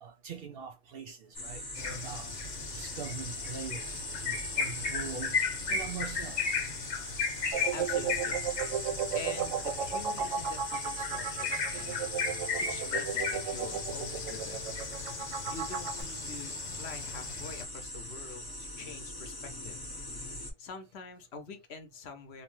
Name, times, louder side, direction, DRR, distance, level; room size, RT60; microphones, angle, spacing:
voice 1, 0.0-2.3 2.7-5.4 5.7-6.6, right 6 dB, 60° right, 0.7 m, -42 dB
sound 1, 1.3-20.5, left 1 dB, 20° left, 0.7 m, -41 dB
sound 2, 1.8-17.6, left 5 dB, 90° left, 1.1 m, -36 dB
sound 3, 7.5-16.0, right 8 dB, 90° right, 0.9 m, -34 dB
voice 2, 7.7-8.4 9.1-12.0 12.6-14.7 15.5-19.8 20.6-22.4, left 4 dB, 65° left, 0.8 m, -45 dB
2.9 x 2.0 x 3.0 m
omnidirectional pair, 1.3 m